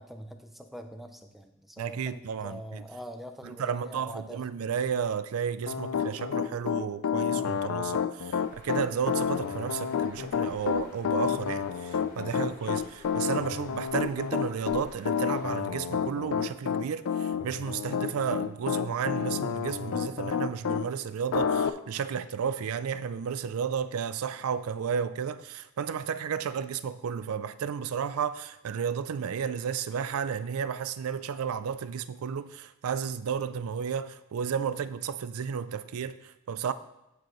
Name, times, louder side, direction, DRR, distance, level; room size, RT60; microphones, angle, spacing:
voice 1, 0.0-4.4, equal, ahead, 0.5 m, -44 dB
voice 2, 1.8-2.8 3.4-36.7, right 7 dB, 80° right, 0.4 m, -32 dB
Piano, 5.7-20.8 21.3-21.7, left 7 dB, 70° left, 0.4 m, -29 dB
Bird, 8.4-15.5, left 2 dB, 40° left, 1.3 m, -52 dB
14.0 x 4.8 x 3.1 m
head